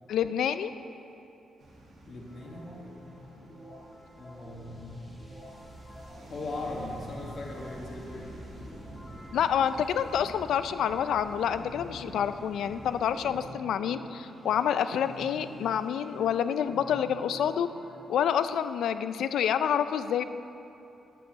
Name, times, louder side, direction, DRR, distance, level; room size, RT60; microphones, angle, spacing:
voice 1, 0.1-0.7 9.3-17.7 18.1-20.2, left 8 dB, 75° left, 12 dB, 0.4 m, -28 dB
sound 1, 1.6-13.4, right 1 dB, 55° right, 1.8 m, -48 dB
voice 2, 2.1-2.7 4.2-5.0 6.3-8.3, left 2 dB, 50° left, -1 dB, 1.6 m, -39 dB
sound 2, 2.3-18.3, left 1 dB, 15° left, 1.7 m, -49 dB
9.4 x 5.4 x 7.2 m, 2.8 s
cardioid pair, 125°, 0 cm